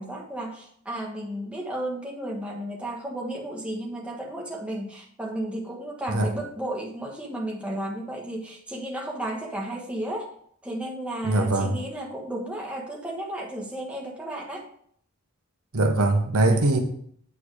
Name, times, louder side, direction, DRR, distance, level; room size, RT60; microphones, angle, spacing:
voice 1, 0.0-10.3 10.6-14.7 16.5-16.8, right 1 dB, 5° right, -2 dB, 1.3 m, -33 dB
voice 2, 11.2-11.8 15.7-16.8, right 2 dB, 85° right, 4 dB, 1.1 m, -21 dB
8.6 x 4.5 x 4.9 m, 0.62 s
head